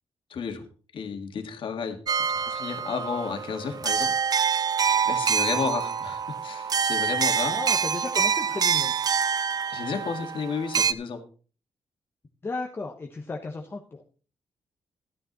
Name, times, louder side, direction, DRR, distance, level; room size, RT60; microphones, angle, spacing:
voice 1, 0.3-0.6 0.9-4.1 5.0-7.6 9.7-11.2, left 5 dB, 60° left, 5 dB, 2.0 m, -32 dB
sound 1, 2.1-10.9, right 7 dB, 40° right, 0.5 m, -26 dB
voice 2, 7.5-9.0 12.4-14.1, left 3 dB, 25° left, 1 dB, 1.1 m, -35 dB
13.0 x 9.7 x 4.1 m, 0.39 s
wide cardioid pair, 150°, 10 cm